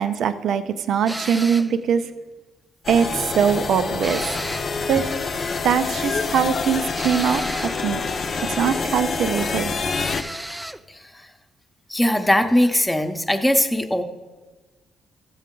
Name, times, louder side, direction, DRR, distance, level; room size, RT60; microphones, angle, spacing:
voice 1, 0.0-2.1 2.9-4.4 4.9-5.1 5.6-8.0 8.4-9.7, right 7 dB, 70° right, 10 dB, 0.5 m, -22 dB
sound 1, 1.1-1.8 4.0-4.8 7.0-7.8 10.0-10.8, right 1 dB, 5° right, 0.4 m, -33 dB
sound 2, 2.8-10.2, left 4 dB, 45° left, 0.7 m, -27 dB
voice 2, 10.9-11.3 11.9-14.0, left 1 dB, 10° left, 6 dB, 0.9 m, -20 dB
14.0 x 7.0 x 3.8 m, 1.2 s
cardioid pair, 90°, 0 cm